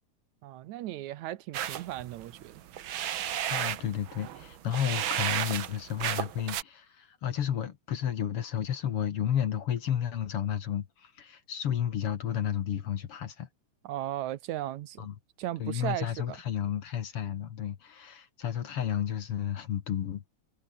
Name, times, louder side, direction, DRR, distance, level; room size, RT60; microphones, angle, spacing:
voice 1, 0.4-2.6 13.8-15.1 15.4-16.4, right 14 dB, 75° right, 2.1 m, -36 dB
sound 1, 1.5-6.6, right 11 dB, 60° right, 1.4 m, -33 dB
voice 2, 3.5-13.5 15.0-15.1 15.6-20.3, left 9 dB, 55° left, 2.1 m, -32 dB
omnidirectional pair, 3.5 m